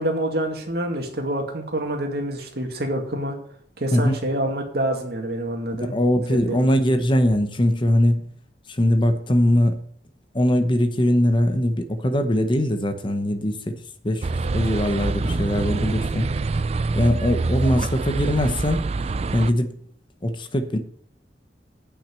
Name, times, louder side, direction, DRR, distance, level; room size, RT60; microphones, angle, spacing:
voice 1, 0.0-3.4 3.8-5.9 6.3-6.7, right 1 dB, 60° right, 2.2 m, -27 dB
voice 2, 5.8-8.3 8.7-9.8 10.3-13.7 14.0-16.3 16.9-18.8 19.3-19.8 20.2-20.8, left 1 dB, 30° left, 0.9 m, -21 dB
sound 1, 14.2-19.5, right 3 dB, 35° right, 0.4 m, -25 dB
8.6 x 6.1 x 8.2 m
head